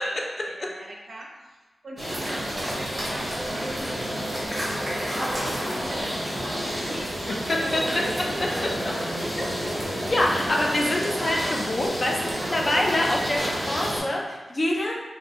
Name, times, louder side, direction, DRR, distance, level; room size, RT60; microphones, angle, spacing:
voice 1, 0.0-4.6 4.9-8.7 12.2-12.7 13.4-13.6, right 1 dB, 55° right, -2 dB, 0.5 m, -42 dB
sound 1, 2.0-14.0, equal, 20° right, 0.7 m, -29 dB
voice 2, 10.1-15.0, left 1 dB, 30° left, -1 dB, 0.4 m, -25 dB
2.5 x 2.1 x 2.8 m, 1.2 s
wide cardioid pair, 170°, 0 cm